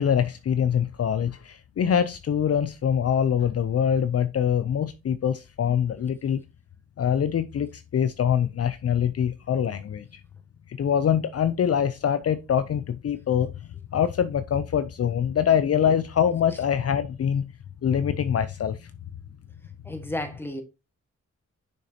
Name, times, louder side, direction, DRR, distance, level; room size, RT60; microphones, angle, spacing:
voice 1, 0.0-6.4 7.0-10.2 10.7-13.5 13.9-17.5 17.8-18.8, left 8 dB, 55° left, 0.5 m, -24 dB
voice 2, 19.8-20.6, left 1 dB, 10° left, 1.6 m, -32 dB
6.4 x 6.4 x 2.8 m
wide cardioid pair, 105°, 29 cm